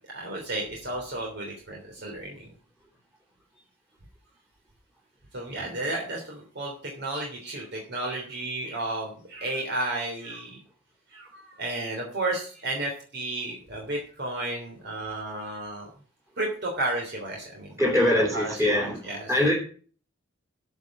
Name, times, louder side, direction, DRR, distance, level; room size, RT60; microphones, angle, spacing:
voice 1, 0.1-2.5 5.3-10.6 11.1-15.9 16.4-18.0 18.3-19.3, right 2 dB, 60° right, 0 dB, 3.4 m, -33 dB
voice 2, 17.8-19.0 19.3-19.5, left 1 dB, 15° right, -2 dB, 3.7 m, -22 dB
14.0 x 5.5 x 7.3 m, 0.42 s
head